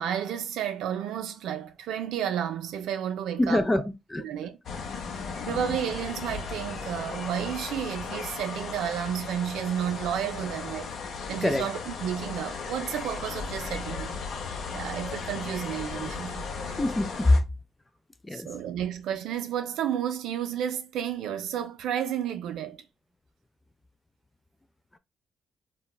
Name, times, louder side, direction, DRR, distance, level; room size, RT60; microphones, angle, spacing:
voice 1, 0.0-3.8 4.2-4.5 5.3-11.0 11.3-14.2 14.7-16.8 18.3-22.8, right 9 dB, 80° right, 0.4 m, -32 dB
voice 2, 3.4-3.8 4.1-4.2 11.4-11.6 16.8-17.4 18.2-18.5, left 1 dB, 15° left, 0.3 m, -23 dB
sound 1, 4.7-17.4, left 5 dB, 65° left, 0.6 m, -36 dB
2.9 x 2.2 x 2.2 m
cardioid pair, 90°, 0 cm